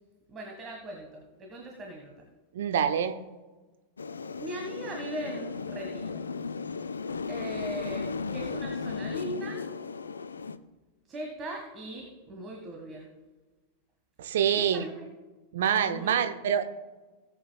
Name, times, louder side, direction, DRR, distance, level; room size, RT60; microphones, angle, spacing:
voice 1, 0.3-2.3 4.4-6.2 7.3-9.6 11.1-13.1 14.5-15.1 15.8-16.4, right 1 dB, 25° right, 1 dB, 1.7 m, -39 dB
voice 2, 2.5-3.2 14.2-14.8 15.5-16.6, right 8 dB, 60° right, 9 dB, 0.6 m, -26 dB
sound 1, 4.0-10.6, left 4 dB, 75° left, 0.4 m, -35 dB
18.5 x 8.0 x 2.3 m, 1.2 s
figure-of-eight pair, 90°, 0 cm